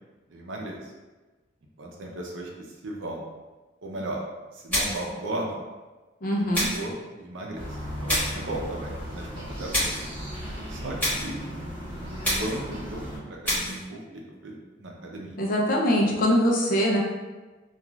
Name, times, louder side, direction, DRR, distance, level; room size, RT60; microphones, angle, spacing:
voice 1, 0.3-0.9 1.8-2.5 2.8-3.2 3.8-4.2 4.6-5.6 6.4-7.7 8.0-9.8 10.7-11.4 12.4-15.4, right 1 dB, 85° right, -1 dB, 0.5 m, -35 dB
sound 1, 4.7-5.1 6.5-6.9 8.1-8.4 9.7-10.1 11.0-11.4 12.2-12.7 13.4-13.8, equal, 10° left, 1.1 m, -27 dB
voice 2, 6.2-6.7 15.4-17.0, equal, 45° left, -2 dB, 0.5 m, -22 dB
sound 2, 7.5-13.2, equal, 30° right, 0.8 m, -36 dB
2.4 x 2.3 x 3.0 m, 1.2 s
head